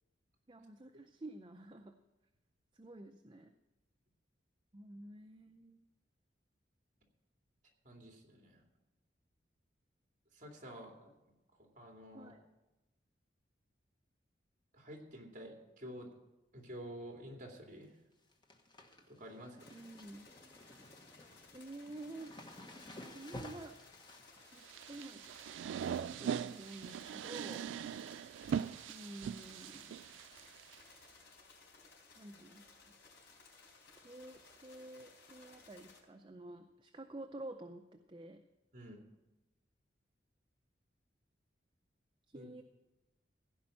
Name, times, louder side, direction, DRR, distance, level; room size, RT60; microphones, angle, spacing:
voice 1, 0.5-2.0 2.7-3.5 4.7-5.8 12.1-12.4 19.7-20.3 21.5-22.3 22.7-23.7 24.5-25.2 25.7-27.7 28.9-29.9 32.2-32.6 33.9-38.4 42.3-42.6, right 2 dB, 25° right, 5 dB, 0.5 m, -50 dB
voice 2, 7.8-8.6 10.3-11.1 11.6-12.3 14.7-16.1 16.5-17.9 19.1-19.7 38.7-39.0 42.3-42.5, equal, 40° right, 1 dB, 2.5 m, -50 dB
sound 1, 17.5-17.9 18.1-27.3 27.7-28.1 28.4-29.3 29.6-29.7 30.6-30.9 31.2-31.3 31.7-31.8 33.3-33.4 34.2-34.3, left 1 dB, 25° left, 1.1 m, -55 dB
sound 2, 19.6-36.0, left 4 dB, 80° left, 4.0 m, -60 dB
sound 3, 24.6-30.8, right 8 dB, 90° right, 0.3 m, -41 dB
16.0 x 5.3 x 8.6 m, 1.0 s
head